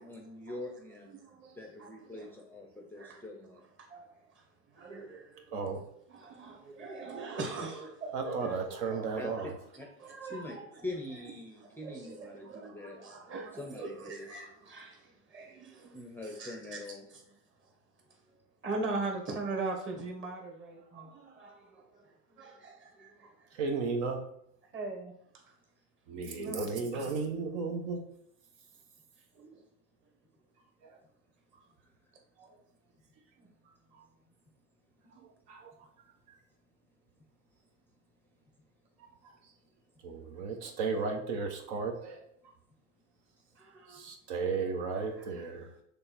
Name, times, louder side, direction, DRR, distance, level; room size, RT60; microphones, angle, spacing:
voice 1, 0.0-1.2 1.6-3.6 9.1-9.3 9.8-9.9 10.2-10.6 10.8-13.0 13.6-14.3 15.9-17.1, left 2 dB, 5° left, 0.7 m, -43 dB
voice 2, 1.1-2.3 2.9-3.2 3.8-5.5 6.1-9.5 10.0-10.8 11.6-16.8 17.1-17.2 18.3-18.4 18.6-23.5 24.7-25.5 26.3-27.3 29.3-29.6 33.4-33.5 35.1-35.3 43.5-44.1 44.9-45.5, right 3 dB, 30° right, 1.6 m, -42 dB
voice 3, 8.1-9.5 23.5-24.2 26.1-28.0 30.8-31.0 32.4-32.5 35.5-35.7 40.0-42.2 43.9-45.7, right 4 dB, 60° right, 1.2 m, -34 dB
6.7 x 3.4 x 4.3 m
supercardioid pair, 125°, 40 cm